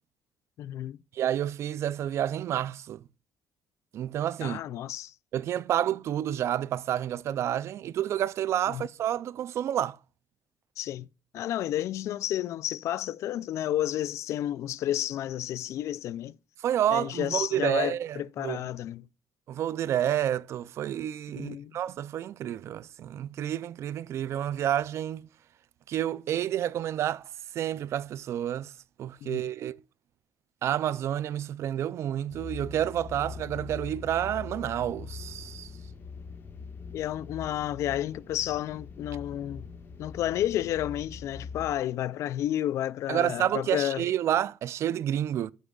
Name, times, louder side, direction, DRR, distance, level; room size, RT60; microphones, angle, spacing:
voice 1, 0.6-1.0 4.4-5.1 8.7-8.8 10.8-11.1 11.3-16.4 16.9-19.1 21.4-21.7 29.2-29.5 36.9-39.7 40.0-44.1, left 12 dB, 70° left, 0.4 m, -31 dB
voice 2, 1.1-3.0 3.9-4.6 5.3-10.0 16.6-18.6 19.5-25.3 25.9-27.2 27.5-28.7 29.0-29.8 30.6-35.7 43.1-45.5, right 11 dB, 65° right, 0.4 m, -29 dB
sound 1, 32.3-41.8, left 5 dB, 45° left, 1.5 m, -42 dB
16.5 x 6.2 x 2.3 m
cardioid pair, 100°, 5 cm